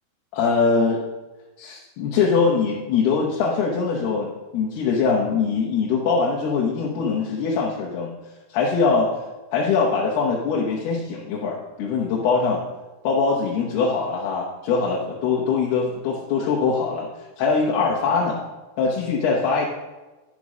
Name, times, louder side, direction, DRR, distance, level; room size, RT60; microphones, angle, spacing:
voice 1, 0.3-1.0 1.6-8.1 8.5-9.1 9.5-12.6 13.0-17.1 17.4-18.4 18.8-19.7, left 5 dB, 90° left, -3 dB, 3.2 m, -22 dB
11.5 x 5.2 x 6.2 m, 1.2 s
omnidirectional pair, 4.4 m